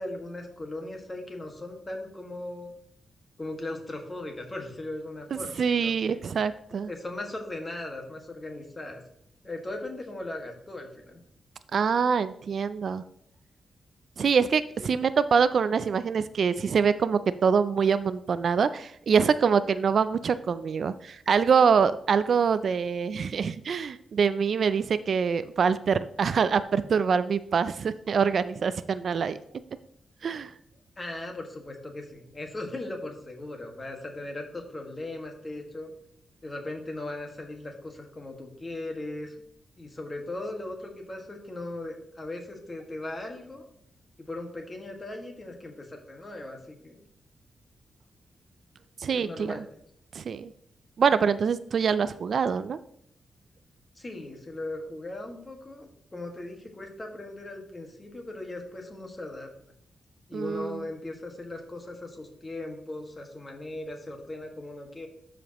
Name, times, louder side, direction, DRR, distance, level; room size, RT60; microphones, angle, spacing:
voice 1, 0.0-2.7 3.4-6.2 6.9-9.0 9.4-11.2 14.8-15.0 31.0-35.9 36.4-39.4 39.8-43.7 44.2-47.0 49.1-49.7 54.0-59.5 60.3-65.1, left 2 dB, 25° left, 3 dB, 1.6 m, -38 dB
voice 2, 5.3-6.9 11.7-13.0 14.2-29.4 30.2-30.5 49.0-49.6 50.1-50.5 51.0-52.8 60.3-60.8, right 6 dB, 60° right, 14 dB, 0.3 m, -25 dB
12.0 x 5.0 x 2.9 m, 0.70 s
wide cardioid pair, 125°, 0 cm